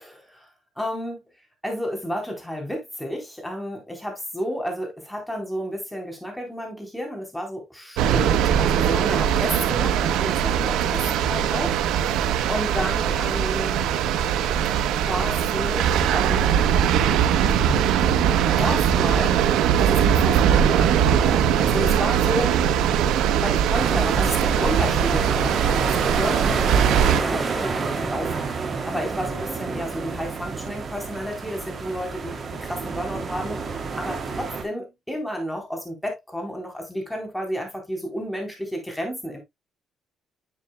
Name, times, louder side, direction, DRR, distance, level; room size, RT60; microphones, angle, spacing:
voice 1, 0.8-1.2 1.6-11.7 12.0-13.8 15.0-16.8 18.6-19.4 19.8-22.6 23.4-26.6 27.0-33.6 34.0-39.4, equal, 5° left, 3.8 m, -31 dB
sound 1, 8.0-27.2, right 9 dB, 85° right, 1.3 m, -21 dB
sound 2, 23.7-34.6, right 4 dB, 35° right, 2.8 m, -28 dB
11.0 x 7.4 x 2.2 m
cardioid pair, 120°, 0 cm